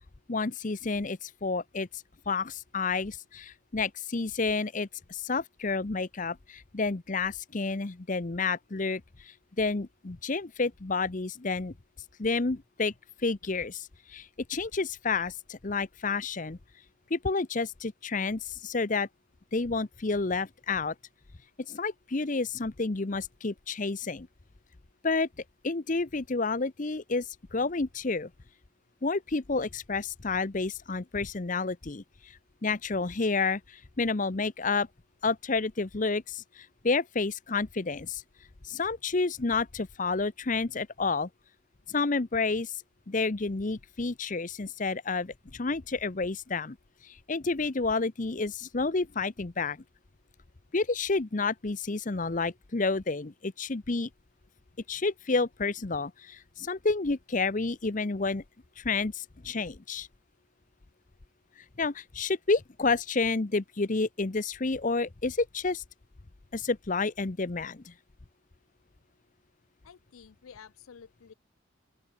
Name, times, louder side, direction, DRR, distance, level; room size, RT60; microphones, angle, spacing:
voice 1, 0.3-1.9 2.3-11.7 12.2-12.9 13.2-16.6 17.1-19.1 19.5-20.9 21.7-24.3 25.0-25.3 25.6-28.3 29.0-34.9 35.2-38.2 38.6-41.3 41.9-46.8 47.0-49.8 50.7-54.1 54.9-58.4 58.8-60.1 61.8-65.8 66.5-67.9, left 3 dB, 40° left, 0.7 m, -30 dB
voice 2, 69.9-71.3, left 7 dB, 90° left, 0.5 m, -51 dB
open air
head